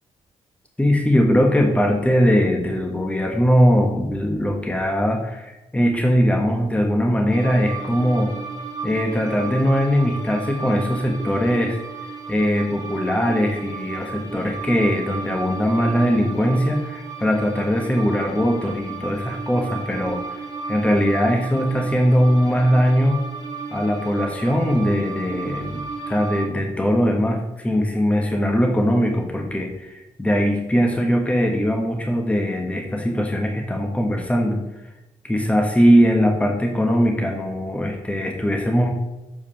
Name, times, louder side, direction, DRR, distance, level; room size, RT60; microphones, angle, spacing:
voice 1, 0.8-8.3 8.8-11.8 12.3-20.4 20.7-23.2 23.7-34.6 35.2-38.9, equal, 10° left, 2 dB, 1.3 m, -20 dB
sound 1, 7.3-26.5, right 4 dB, 35° right, 2.2 m, -33 dB
7.3 x 4.8 x 5.6 m, 1.0 s
cardioid pair, 75°, 12 cm